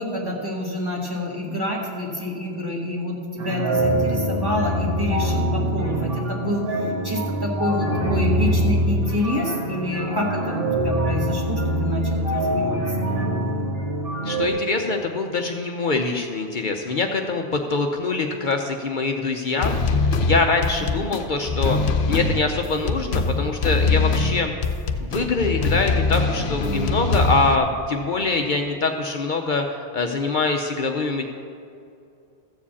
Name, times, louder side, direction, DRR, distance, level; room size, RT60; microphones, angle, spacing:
voice 1, 0.0-6.6 7.0-12.8 20.8-21.0, left 1 dB, 20° right, -3 dB, 1.9 m, -28 dB
sound 1, 3.4-14.5, right 1 dB, 65° right, 1.8 m, -24 dB
voice 2, 14.2-19.8 20.2-24.5 25.0-31.2, left 3 dB, 55° left, 3 dB, 0.8 m, -24 dB
sound 2, 19.6-27.6, left 3 dB, 90° left, 1.0 m, -23 dB
14.0 x 5.0 x 8.3 m, 2.5 s
omnidirectional pair, 1.0 m